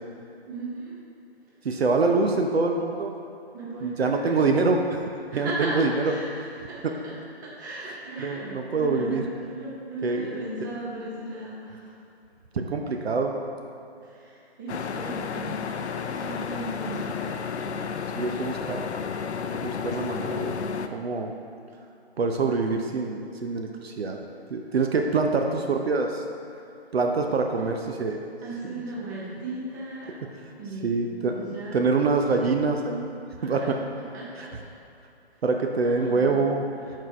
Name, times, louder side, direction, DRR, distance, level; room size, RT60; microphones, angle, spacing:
voice 1, 0.4-1.0 3.5-4.5 5.3-7.1 7.4-12.0 14.0-15.6 16.1-17.1 28.4-30.9 31.3-31.7 33.4-33.7 34.1-34.7 35.8-36.5, right 2 dB, 20° right, -6 dB, 0.9 m, -36 dB
voice 2, 1.6-3.1 3.8-5.0 5.3-6.1 8.2-9.2 10.0-10.2 12.5-13.3 18.2-18.8 19.6-20.6 20.9-21.3 22.2-24.2 24.5-26.2 26.9-28.2 30.8-31.4 31.7-33.1 33.4-33.6 35.4-36.6, right 3 dB, 70° right, 3 dB, 0.7 m, -25 dB
sound 1, 14.7-20.9, left 6 dB, 90° left, 0.5 m, -32 dB
6.0 x 4.6 x 4.6 m, 2.6 s
hypercardioid pair, 160°, 32 cm